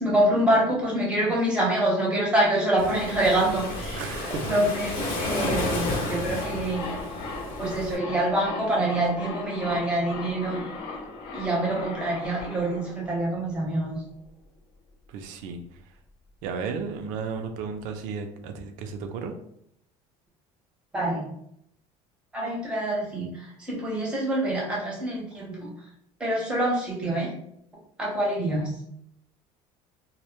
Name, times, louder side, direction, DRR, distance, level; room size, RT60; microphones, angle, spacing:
voice 1, 0.0-4.0 4.5-6.8 7.6-10.6 11.3-14.0 20.9-21.3 22.3-25.7 26.2-27.3 28.0-28.7, right 1 dB, 10° right, -4 dB, 0.7 m, -26 dB
Waves surf, 2.8-8.0, left 2 dB, 75° left, 0.8 m, -31 dB
voice 2, 4.0-4.6 15.1-15.8 16.4-19.3, right 5 dB, 75° right, 6 dB, 0.4 m, -34 dB
sound 1, 5.2-14.0 14.3-14.4, left 3 dB, 40° left, 0.4 m, -38 dB
2.1 x 2.1 x 2.9 m, 0.73 s
cardioid pair, 155°, 13 cm